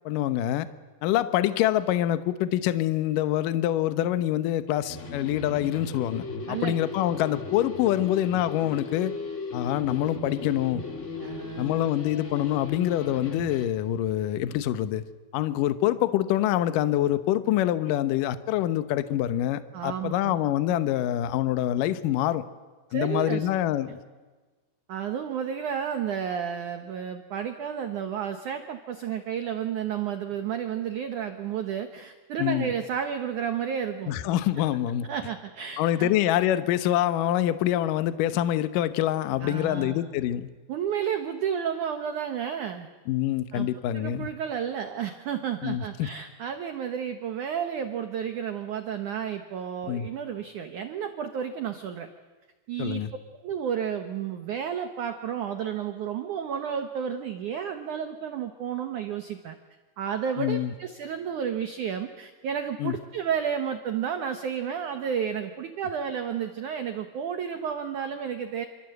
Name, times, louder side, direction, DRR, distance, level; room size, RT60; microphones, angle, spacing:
voice 1, 0.1-0.7 1.0-9.1 9.5-10.8 11.6-15.0 15.3-22.5 22.9-24.0 32.4-32.7 34.1-35.1 35.8-40.5 43.1-44.3 45.6-46.1 49.9-50.1 52.8-53.1 60.4-60.7 62.8-63.0, left 12 dB, 80° left, 11 dB, 1.9 m, -25 dB
sound 1, 4.9-13.7, left 3 dB, 65° left, 0.7 m, -37 dB
voice 2, 11.2-11.8 19.7-20.4 22.9-23.5 24.9-34.1 35.1-36.1 39.4-40.1 40.7-42.9 43.5-43.7 43.9-52.1 52.7-53.0 53.4-59.6 60.0-68.7, right 8 dB, 75° right, 7 dB, 1.8 m, -31 dB
28.0 x 26.0 x 7.9 m, 1.3 s
omnidirectional pair, 5.3 m